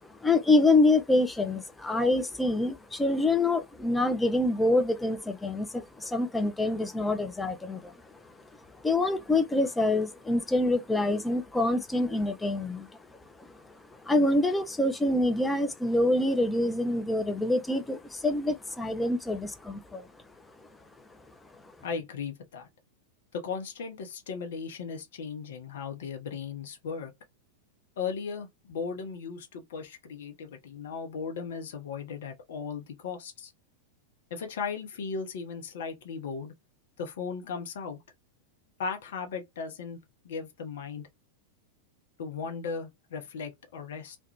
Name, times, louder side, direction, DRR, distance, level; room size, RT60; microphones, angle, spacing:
voice 1, 0.1-7.9 8.8-12.9 13.4-13.6 13.9-20.1, left 2 dB, 10° left, 0.4 m, -26 dB
voice 2, 21.8-22.7 23.3-27.1 28.0-33.5 34.3-36.5 37.0-38.0 38.8-40.0 40.2-41.1 42.2-44.2, left 5 dB, 60° left, 0.6 m, -37 dB
2.3 x 2.2 x 2.9 m
figure-of-eight pair, 90°, 0 cm